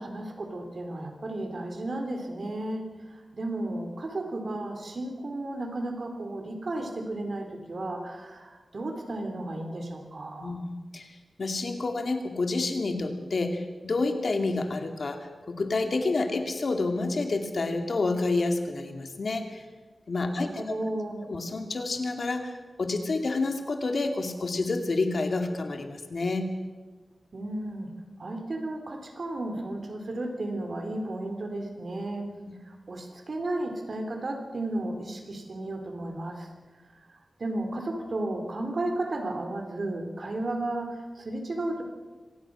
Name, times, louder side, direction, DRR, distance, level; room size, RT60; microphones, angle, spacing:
voice 1, 0.0-10.5 20.2-21.2 27.3-27.9 28.2-32.3 32.7-36.5 37.4-41.8, right 2 dB, 55° right, 5 dB, 3.7 m, -33 dB
voice 2, 10.4-11.1 11.4-19.6 20.1-20.6 21.3-26.5, left 3 dB, 60° left, 5 dB, 2.6 m, -29 dB
25.5 x 17.5 x 6.4 m, 1.3 s
wide cardioid pair, 115°, 0 cm